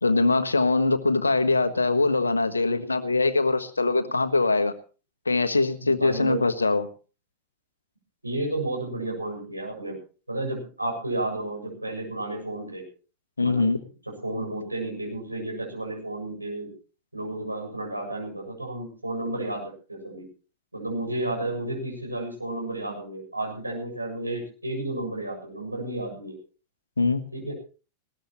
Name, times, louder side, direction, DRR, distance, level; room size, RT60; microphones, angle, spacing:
voice 1, 0.0-4.7 5.2-6.9 13.4-13.8 27.0-27.2, left 3 dB, 80° left, 10 dB, 1.4 m, -22 dB
voice 2, 5.8-6.4 8.2-10.0 10.3-12.8 13.4-13.6 14.2-16.7 17.1-20.3 20.7-26.4 27.3-27.5, right 2 dB, 85° right, 1 dB, 7.7 m, -32 dB
20.0 x 18.5 x 3.1 m, 0.37 s
figure-of-eight pair, 90°, 0 cm